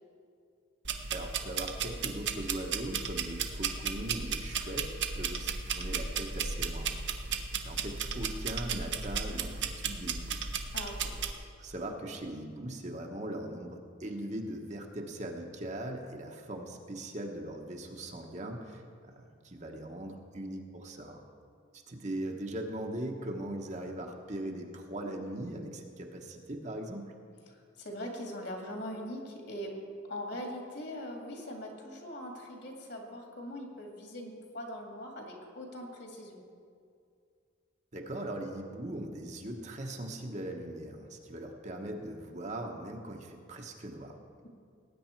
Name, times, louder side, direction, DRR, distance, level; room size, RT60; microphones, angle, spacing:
sound 1, 0.8-11.3, right 6 dB, 60° right, 0.9 m, -35 dB
voice 1, 1.1-6.9 7.6-10.4 11.6-21.2 21.9-27.1 37.9-44.2, right 1 dB, 35° right, 2 dB, 1.0 m, -40 dB
voice 2, 10.7-11.1 27.5-29.7 30.1-36.4, equal, 55° left, 1 dB, 2.2 m, -41 dB
19.0 x 9.3 x 4.5 m, 2.4 s
head